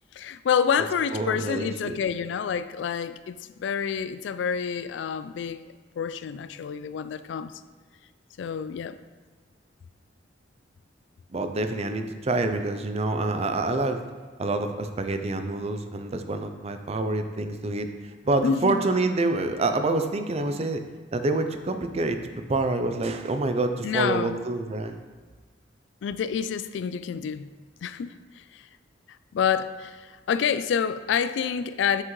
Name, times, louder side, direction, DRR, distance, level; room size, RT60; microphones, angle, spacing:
voice 1, 0.1-7.5 8.4-9.0 18.4-18.8 23.8-24.4 26.0-27.5 27.8-28.7 29.3-32.0, left 7 dB, 70° left, 0.3 m, -28 dB
voice 2, 1.1-2.0 11.3-14.0 14.4-17.9 18.2-20.8 21.1-22.2 22.5-25.0, right 2 dB, 35° right, 0.5 m, -27 dB
7.7 x 5.8 x 3.1 m
head